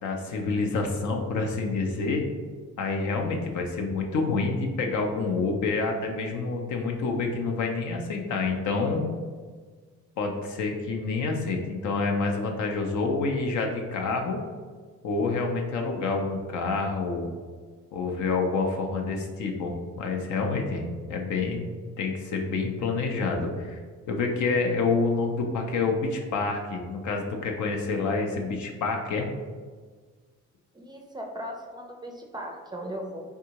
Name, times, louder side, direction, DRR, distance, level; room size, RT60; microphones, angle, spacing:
voice 1, 0.0-2.2 2.8-9.0 10.2-14.4 15.0-17.3 17.9-21.7 22.0-23.8 24.1-29.3, left 4 dB, 75° left, 3 dB, 0.6 m, -28 dB
voice 2, 30.7-33.2, equal, 15° right, 1 dB, 0.4 m, -37 dB
3.5 x 2.7 x 2.9 m, 1.5 s
cardioid pair, 90°, 30 cm